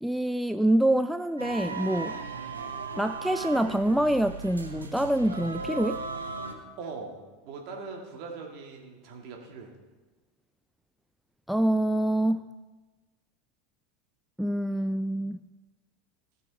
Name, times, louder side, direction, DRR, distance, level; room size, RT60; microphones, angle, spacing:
voice 1, 0.0-2.2 3.0-6.0 11.5-12.4 14.4-15.4, right 1 dB, ahead, 10 dB, 0.3 m, -26 dB
sound 1, 1.4-6.5, right 4 dB, 80° right, 1.1 m, -36 dB
voice 2, 6.8-9.7, right 4 dB, 50° right, 1 dB, 2.4 m, -41 dB
18.0 x 6.8 x 4.2 m, 1.2 s
figure-of-eight pair, 80°, 0 cm